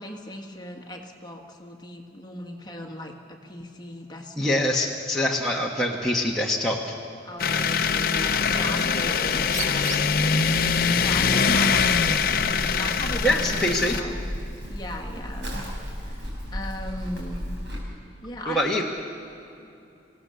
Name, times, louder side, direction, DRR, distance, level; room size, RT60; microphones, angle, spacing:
voice 1, 0.0-4.6 7.2-10.7 11.0-12.2 12.5-14.2 14.7-15.7 16.0-16.3 16.5-17.5 18.2-18.8, left 1 dB, 25° left, 2 dB, 1.6 m, -37 dB
voice 2, 4.4-6.8 13.2-14.0 18.5-18.8, left 1 dB, 5° left, -4 dB, 1.3 m, -24 dB
sound 1, 7.4-14.0, left 5 dB, 50° left, 0.7 m, -23 dB
Bird, 7.7-13.7, right 2 dB, 40° right, 1.5 m, -39 dB
Livestock farm animals working animals, 11.8-17.8, equal, 75° right, 5.2 m, -34 dB
25.5 x 16.5 x 6.9 m, 2.7 s
head